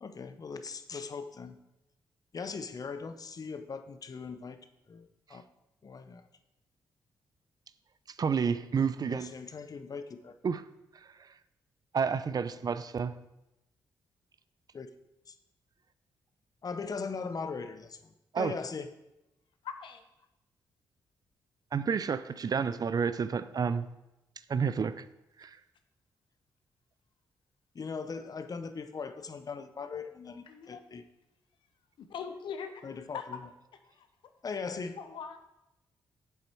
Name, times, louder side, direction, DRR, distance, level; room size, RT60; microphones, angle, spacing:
voice 1, 0.0-1.6 2.3-5.4 5.8-6.2 9.1-10.3 14.7-14.9 15.3-15.4 16.6-18.9 27.7-31.0 32.8-33.4 34.4-35.0, left 5 dB, 45° left, 9 dB, 0.8 m, -40 dB
voice 2, 8.2-9.3 10.4-10.6 11.9-13.1 18.3-18.5 21.7-23.9 24.5-25.0 25.4-25.5, right 6 dB, 50° right, 14 dB, 0.5 m, -30 dB
voice 3, 19.6-20.0 30.5-30.8 32.0-32.9 33.1-33.3 33.9-34.1 35.0-35.4, left 7 dB, 75° left, 8 dB, 0.8 m, -41 dB
7.7 x 7.1 x 4.5 m, 0.92 s
supercardioid pair, 50°, 8 cm